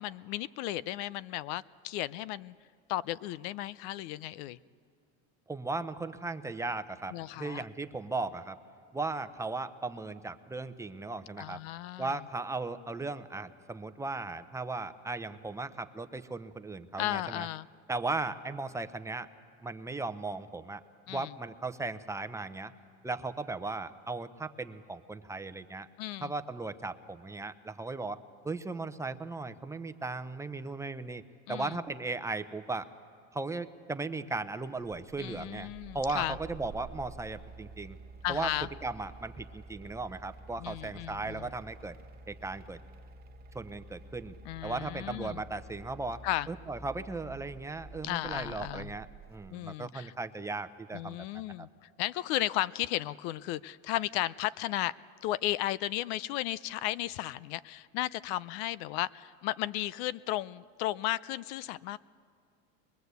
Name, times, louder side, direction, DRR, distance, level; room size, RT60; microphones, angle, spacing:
voice 1, 0.0-2.5 2.9-4.6 7.1-7.6 11.4-12.2 17.0-17.7 21.1-21.3 26.0-26.3 31.5-31.8 35.2-36.4 38.2-38.7 40.6-41.5 44.4-45.4 46.2-46.5 48.0-48.9 49.5-50.1 50.9-51.7 52.0-54.9 55.2-62.0, left 15 dB, 75° left, 20 dB, 0.6 m, -34 dB
voice 2, 5.5-8.6 8.9-11.6 12.0-17.5 17.9-19.3 19.6-20.8 21.1-22.7 23.0-25.9 26.2-31.2 31.5-32.9 33.3-38.0 38.3-38.5 38.8-42.0 42.3-42.8 43.5-44.3 44.6-51.4, right 3 dB, 10° right, 10 dB, 0.7 m, -37 dB
sound 1, 34.8-49.5, right 3 dB, 30° right, 1.0 m, -50 dB
22.5 x 22.0 x 8.2 m, 2.2 s
supercardioid pair, 130°, 31 cm